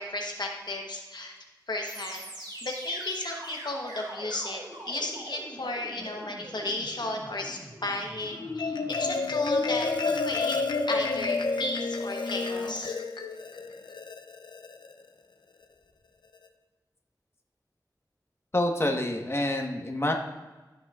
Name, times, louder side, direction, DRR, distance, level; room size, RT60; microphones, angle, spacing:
voice 1, 0.0-1.3 1.7-2.3 2.6-10.6 10.9-13.0, left 2 dB, 70° left, 1 dB, 1.0 m, -34 dB
sound 1, 1.8-11.9, right 1 dB, 70° right, 2.3 m, -45 dB
Marimba xylophone, 8.3-14.9, left 3 dB, 90° left, 0.5 m, -30 dB
voice 2, 18.5-20.1, left 1 dB, 35° left, 2 dB, 1.2 m, -27 dB
15.5 x 6.0 x 2.4 m, 1.2 s
wide cardioid pair, 50°, 8 cm